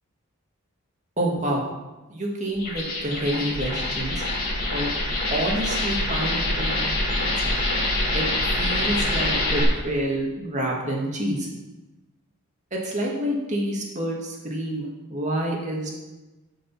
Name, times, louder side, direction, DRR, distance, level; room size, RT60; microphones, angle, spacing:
voice 1, 1.2-1.7 2.1-4.2 4.7-4.9 5.3-7.6 8.1-11.5 12.7-15.9, right 1 dB, 35° right, -2 dB, 2.0 m, -28 dB
sound 1, 2.5-9.6, left 1 dB, 40° left, 3.2 m, -25 dB
12.5 x 5.3 x 5.6 m, 1.1 s
head